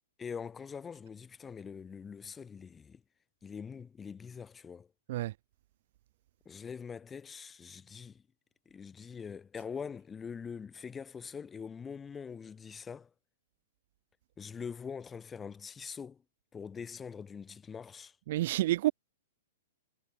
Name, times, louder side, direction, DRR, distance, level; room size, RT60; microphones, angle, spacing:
voice 1, 0.2-3.0 3.4-4.9 6.4-8.2 8.7-13.1 14.4-16.2 16.5-18.2, left 6 dB, 10° left, 4.7 m, -43 dB
voice 2, 18.3-18.9, right 15 dB, 50° right, 0.5 m, -29 dB
hypercardioid pair, 160°, 0 cm